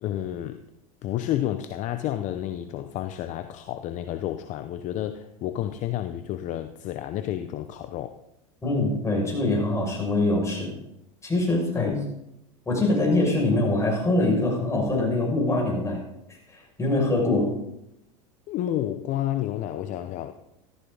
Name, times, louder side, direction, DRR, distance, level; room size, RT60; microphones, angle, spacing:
voice 1, 0.0-0.6 1.0-8.2 11.7-11.9 18.5-20.3, left 12 dB, 45° left, 10 dB, 0.8 m, -30 dB
voice 2, 8.6-10.7 11.2-12.0 12.7-16.0 16.3-17.6, left 2 dB, 15° left, -2 dB, 6.2 m, -24 dB
14.0 x 14.0 x 4.0 m, 0.83 s
hypercardioid pair, 105°, 17 cm